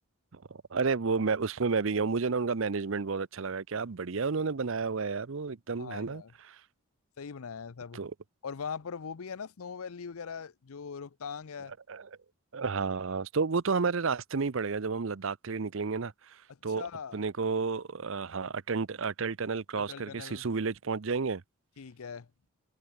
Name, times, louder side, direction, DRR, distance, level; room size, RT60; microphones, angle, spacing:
voice 1, 0.3-6.6 7.9-8.1 11.9-12.1 12.5-16.8 17.1-21.4, right 4 dB, 65° right, 0.6 m, -31 dB
voice 2, 5.8-6.3 7.2-8.0 8.4-11.7 16.8-17.2 19.8-20.4 21.8-22.3, left 6 dB, 80° left, 0.6 m, -41 dB
head